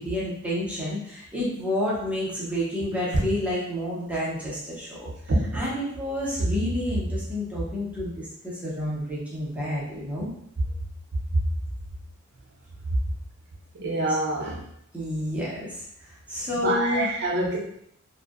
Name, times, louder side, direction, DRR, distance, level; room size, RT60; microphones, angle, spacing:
voice 1, 0.0-5.1 5.5-10.3 11.3-11.4 14.1-14.4 14.9-17.2, equal, 5° right, -7 dB, 0.6 m, -29 dB
voice 2, 5.3-5.6 13.8-14.6 16.6-17.6, right 1 dB, 50° right, -1 dB, 0.6 m, -25 dB
2.5 x 2.1 x 2.4 m, 0.71 s
head